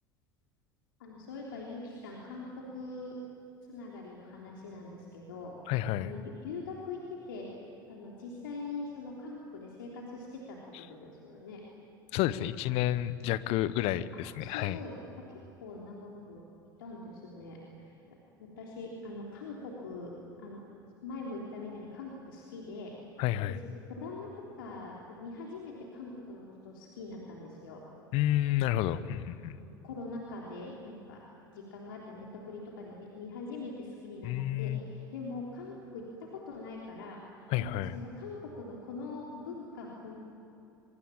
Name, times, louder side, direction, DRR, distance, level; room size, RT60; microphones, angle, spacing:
voice 1, 1.0-3.2 3.7-5.6 6.0-7.5 7.9-10.6 10.9-11.6 14.4-16.4 16.8-20.1 20.4-20.6 21.0-22.9 23.5-23.6 23.9-24.3 24.6-27.8 29.1-29.2 29.6-31.2 31.5-36.0 36.3-37.2 37.6-40.2, left 3 dB, 75° left, -3 dB, 3.4 m, -43 dB
voice 2, 5.7-6.1 12.1-14.8 23.2-23.6 28.1-29.6 34.2-34.8 37.5-37.9, left 13 dB, 55° left, 16 dB, 1.0 m, -30 dB
24.5 x 23.5 x 8.8 m, 2.8 s
figure-of-eight pair, 70°, 12 cm